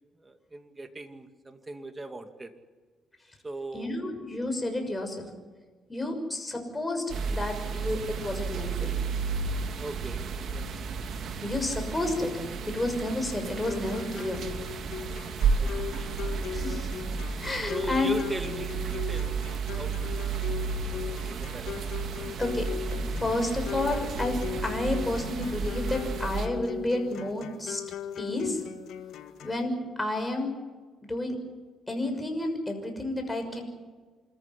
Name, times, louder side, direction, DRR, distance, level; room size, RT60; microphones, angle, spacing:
voice 1, 0.2-2.5 3.4-4.0 9.8-10.3 10.5-10.7 15.6-15.9 17.7-20.3 21.0-21.8 22.2-22.4, right 2 dB, 20° right, 7 dB, 2.4 m, -39 dB
voice 2, 3.7-5.3 5.9-9.0 11.4-12.3 12.6-14.4 16.5-16.9 17.4-18.1 22.4-27.8 28.2-28.6 29.4-30.5 31.0-31.4 31.9-33.6, left 2 dB, 15° left, 4 dB, 6.3 m, -31 dB
sound 1, 7.1-26.5, right 5 dB, 65° right, 2.5 m, -32 dB
sound 2, 13.6-29.6, left 8 dB, 80° left, 1.8 m, -39 dB
26.5 x 14.5 x 9.8 m, 1.4 s
cardioid pair, 90°, 0 cm